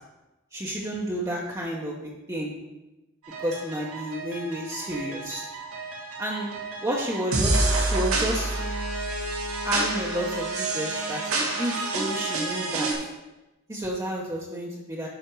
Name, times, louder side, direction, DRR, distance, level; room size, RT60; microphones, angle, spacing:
voice 1, 0.5-2.5 3.4-5.4 6.2-8.6 9.6-12.9 13.7-15.1, equal, 15° right, -3 dB, 1.0 m, -31 dB
sound 1, 3.2-12.9, right 2 dB, 85° right, 2.1 m, -29 dB
11.5 x 5.1 x 4.7 m, 1.0 s
head